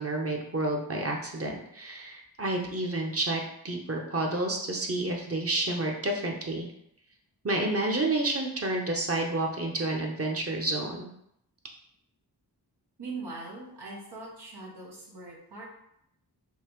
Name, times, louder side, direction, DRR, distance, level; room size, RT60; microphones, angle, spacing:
voice 1, 0.0-6.7 7.4-11.1, right 2 dB, 35° right, 1 dB, 0.9 m, -30 dB
voice 2, 13.0-15.6, right 3 dB, 80° right, -5 dB, 1.2 m, -41 dB
5.5 x 2.6 x 3.1 m, 0.73 s
wide cardioid pair, 65°, 39 cm